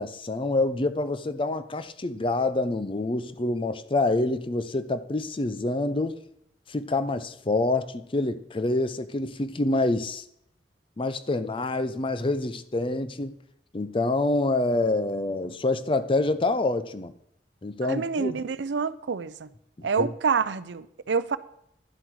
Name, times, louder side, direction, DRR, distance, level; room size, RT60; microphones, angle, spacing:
voice 1, 0.0-6.1 6.7-10.2 11.0-13.3 13.7-17.1 17.6-18.4 19.8-20.1, left 2 dB, 30° left, 0.6 m, -27 dB
voice 2, 17.8-19.5 19.8-21.4, right 5 dB, 75° right, 0.5 m, -27 dB
11.0 x 7.6 x 4.7 m
head